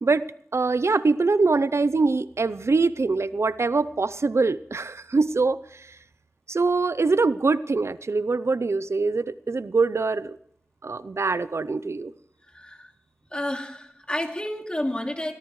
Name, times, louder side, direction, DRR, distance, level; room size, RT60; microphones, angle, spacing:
voice 1, 0.5-6.0 6.5-10.4 10.8-12.1, right 3 dB, 80° right, 15 dB, 0.5 m, -23 dB
voice 2, 12.5-12.9 13.3-15.3, left 1 dB, 20° left, 3 dB, 2.6 m, -30 dB
23.5 x 17.5 x 3.2 m, 0.67 s
wide cardioid pair, 65°, 5 cm